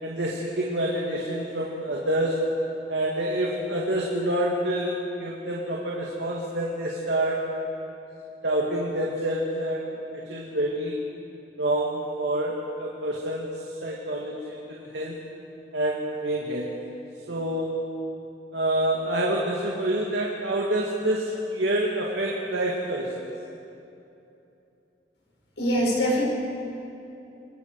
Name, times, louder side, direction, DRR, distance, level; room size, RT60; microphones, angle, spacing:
voice 1, 0.0-2.6 2.9-7.5 8.4-11.0 11.6-15.2 15.7-16.8 17.3-17.8 18.5-23.3, right 1 dB, 80° right, -3 dB, 2.5 m, -27 dB
voice 2, 25.6-26.2, equal, 80° left, -3 dB, 6.0 m, -23 dB
28.5 x 22.0 x 5.0 m, 2.9 s
head